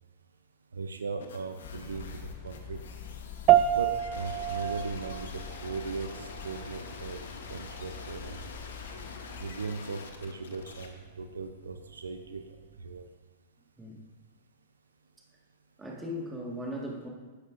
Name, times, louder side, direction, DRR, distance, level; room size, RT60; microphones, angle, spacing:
voice 1, 0.7-2.8 3.7-8.6 9.4-13.1, right 4 dB, 85° right, 7 dB, 0.6 m, -38 dB
sound 1, 1.2-10.9, left 4 dB, 70° left, 1.0 m, -46 dB
sound 2, 1.6-9.5, left 7 dB, 45° left, 1.0 m, -45 dB
sound 3, 3.5-13.1, right 12 dB, 40° right, 0.3 m, -31 dB
voice 2, 15.8-17.1, left 1 dB, 10° right, -2 dB, 1.8 m, -37 dB
11.5 x 7.9 x 2.6 m, 1.3 s
hypercardioid pair, 110°, 0 cm